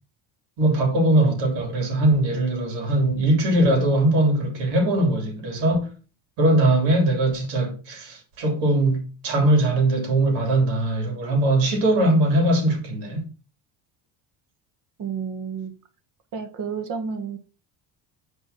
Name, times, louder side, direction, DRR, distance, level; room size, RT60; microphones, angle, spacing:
voice 1, 0.6-5.9 6.4-13.2, right 1 dB, 90° right, 3.4 m, -21 dB
voice 2, 15.0-15.7 16.3-17.4, right 6 dB, 50° right, 1.5 m, -30 dB
6.2 x 4.7 x 6.0 m
cardioid pair, 160°, 40 cm